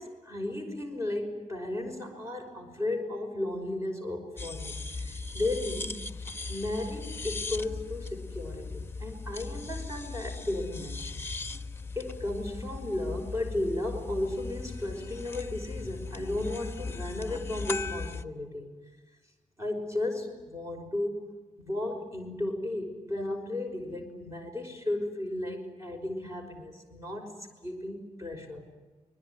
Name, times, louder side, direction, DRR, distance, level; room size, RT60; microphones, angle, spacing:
voice 1, 0.0-6.0 6.5-11.3 12.0-18.7 19.6-21.3 21.6-28.7, left 1 dB, 20° right, 3 dB, 5.6 m, -34 dB
sound 1, 4.4-18.2, left 3 dB, 15° left, 1.2 m, -38 dB
26.0 x 21.5 x 9.5 m, 1.2 s
wide cardioid pair, 130°, 14 cm